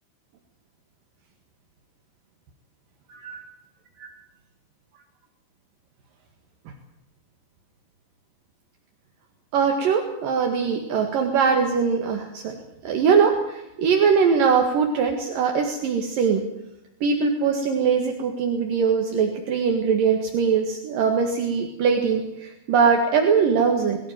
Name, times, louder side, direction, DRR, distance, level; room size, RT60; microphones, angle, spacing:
voice 1, 3.1-3.4 4.0-4.1 9.5-12.6 12.8-16.4 17.0-24.0, right 6 dB, 70° right, 3 dB, 3.5 m, -21 dB
22.5 x 15.0 x 9.0 m, 0.89 s
omnidirectional pair, 4.3 m